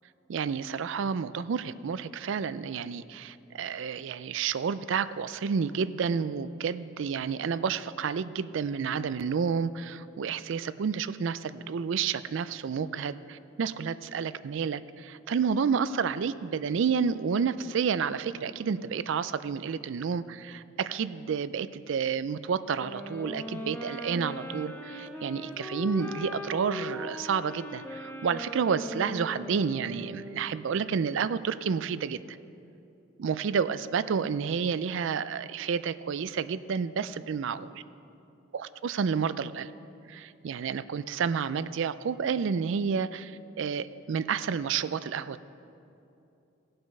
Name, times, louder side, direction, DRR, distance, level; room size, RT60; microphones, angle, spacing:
voice 1, 0.3-32.2 33.2-37.7 38.5-39.7 40.1-45.4, right 6 dB, 65° right, 15 dB, 0.4 m, -30 dB
sound 1, 22.8-30.7, equal, 10° left, 1.0 m, -39 dB
17.0 x 7.9 x 5.4 m, 2.8 s
head